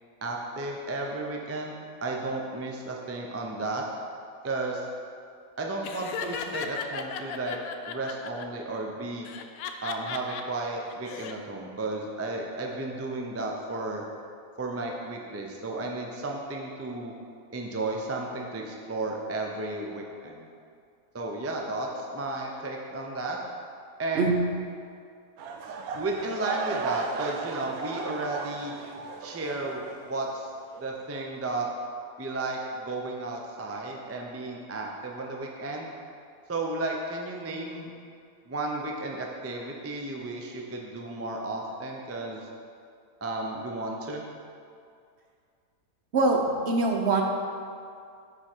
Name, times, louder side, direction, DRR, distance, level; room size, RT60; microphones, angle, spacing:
voice 1, 0.2-3.8 4.4-4.9 5.6-7.6 7.9-9.3 9.8-14.0 14.6-17.1 17.5-20.5 21.1-23.4 24.0-24.3 26.0-28.7 29.2-30.5 30.8-31.7 32.2-35.9 36.5-37.9 38.5-42.4 43.2-44.2, right 2 dB, 20° right, 0 dB, 0.3 m, -33 dB
Laughter, 5.8-8.4 9.2-10.4 10.9-11.3, left 7 dB, 80° left, 1.0 m, -36 dB
voice 2, 24.1-24.5 46.1-47.2, right 3 dB, 55° right, 1 dB, 0.9 m, -23 dB
sound 1, 25.4-30.4 30.7-31.0 31.5-31.6, right 5 dB, 80° right, 1.1 m, -36 dB
9.6 x 4.5 x 4.5 m, 2.3 s
omnidirectional pair, 1.5 m